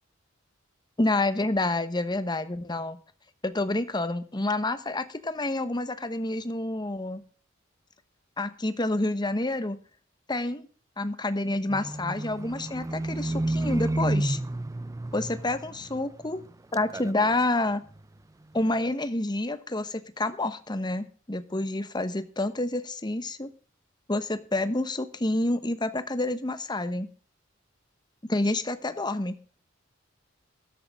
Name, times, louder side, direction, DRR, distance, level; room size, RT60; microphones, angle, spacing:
voice 1, 1.0-3.0 3.4-7.2 8.4-9.8 10.3-10.7 11.0-14.4 15.1-16.4 16.7-17.8 18.5-23.5 24.1-27.1 28.3-29.4, left 2 dB, 20° left, 11 dB, 1.1 m, -28 dB
Livestock farm animals working animals, 11.7-16.5 16.7-17.4 17.9-18.0, right 1 dB, 15° right, 0.5 m, -31 dB
13.5 x 12.5 x 3.6 m, 0.40 s
head